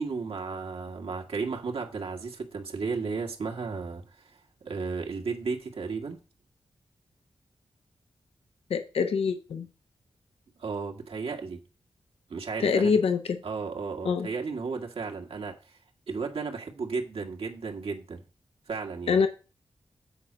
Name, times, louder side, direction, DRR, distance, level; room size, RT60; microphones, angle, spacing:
voice 1, 0.0-6.2 10.6-11.6 12.3-13.0 13.4-15.8 16.1-18.2 18.7-19.2, right 4 dB, 75° right, 1.7 m, -34 dB
voice 2, 8.7-9.7 12.6-13.2 14.0-14.3 19.1-19.3, left 5 dB, 85° left, 0.8 m, -24 dB
8.3 x 4.3 x 6.1 m
cardioid pair, 60°, 10 cm